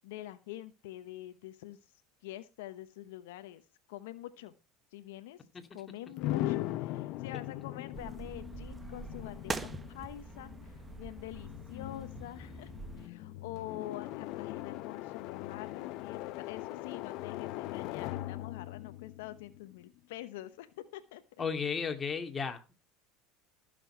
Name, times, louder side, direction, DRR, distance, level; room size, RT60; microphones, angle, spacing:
voice 1, 0.0-1.8 2.2-3.6 3.9-4.5 4.9-5.4 5.7-21.2, left 14 dB, 80° left, 1.0 m, -46 dB
sound 1, 6.2-20.0, left 15 dB, 60° left, 0.7 m, -40 dB
sound 2, 7.9-13.1, right 4 dB, 20° right, 1.1 m, -44 dB
voice 2, 21.4-22.7, left 6 dB, 25° left, 2.3 m, -34 dB
15.5 x 6.9 x 4.4 m
supercardioid pair, 95°, 0 cm